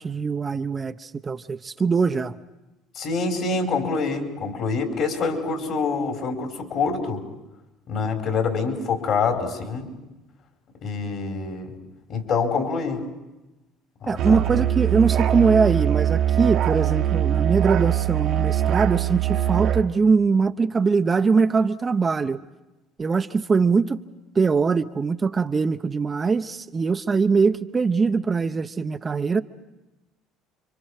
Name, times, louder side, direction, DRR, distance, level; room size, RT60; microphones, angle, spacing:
voice 1, 0.0-2.4 14.1-22.4 23.0-24.0 24.3-29.4, right 5 dB, 30° right, 9 dB, 0.8 m, -22 dB
voice 2, 2.9-7.2 7.9-9.9 10.8-11.7 12.1-13.0 14.0-14.6, left 4 dB, 55° left, 2 dB, 4.6 m, -26 dB
Musical instrument, 14.2-19.9, right 11 dB, 60° right, 1.2 m, -22 dB
30.0 x 24.5 x 4.9 m, 1.0 s
supercardioid pair, 75°, 0 cm